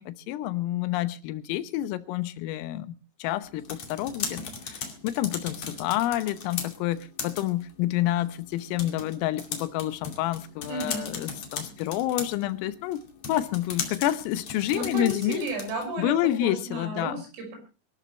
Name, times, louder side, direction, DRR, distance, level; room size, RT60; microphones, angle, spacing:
voice 1, 0.0-2.9 3.2-15.4 16.0-17.2, left 13 dB, 80° left, 3.6 m, -29 dB
sound 1, 3.4-15.9, left 5 dB, 40° left, 2.8 m, -38 dB
voice 2, 10.7-11.1 14.7-16.1 16.4-17.6, right 2 dB, 65° right, 8.2 m, -33 dB
25.0 x 12.5 x 3.2 m
omnidirectional pair, 6.0 m